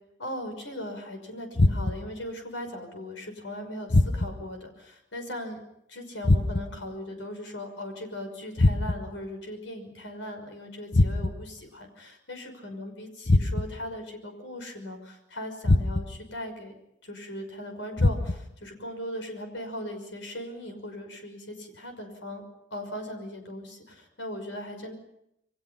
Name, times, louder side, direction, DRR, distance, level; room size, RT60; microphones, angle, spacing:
voice 1, 0.2-5.6 5.9-16.7 17.0-22.4 22.7-24.9, left 1 dB, 80° left, 5 dB, 6.0 m, -39 dB
sound 1, 1.5-2.2 3.9-4.5 6.2-6.9 8.6-9.2 10.9-11.6 13.3-13.9 15.6-16.3 18.0-18.6, left 2 dB, 60° left, 1.0 m, -24 dB
28.5 x 23.5 x 5.8 m, 0.78 s
head